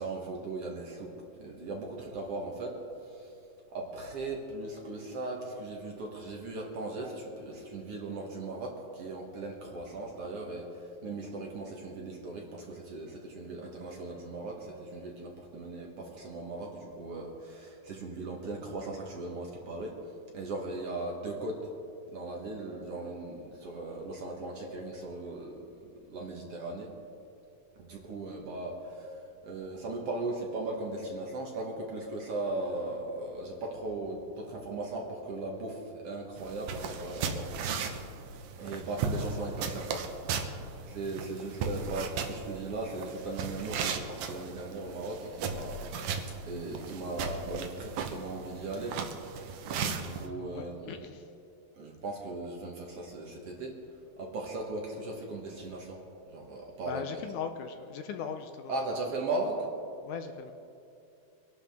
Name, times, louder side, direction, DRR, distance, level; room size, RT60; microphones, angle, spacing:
voice 1, 0.0-3.3 3.7-20.0 20.3-21.7 22.1-26.9 27.7-37.5 38.6-40.0 40.3-40.5 40.9-49.0 50.0-51.0 51.7-53.8 54.2-57.2 58.7-59.7, right 2 dB, 55° right, -1 dB, 2.0 m, -38 dB
sound 1, 36.4-50.3, right 5 dB, 75° right, 2.3 m, -36 dB
voice 2, 50.5-51.3 56.8-59.2 60.0-60.5, left 7 dB, 80° left, 7 dB, 2.0 m, -39 dB
24.0 x 12.0 x 3.6 m, 2.7 s
omnidirectional pair, 3.9 m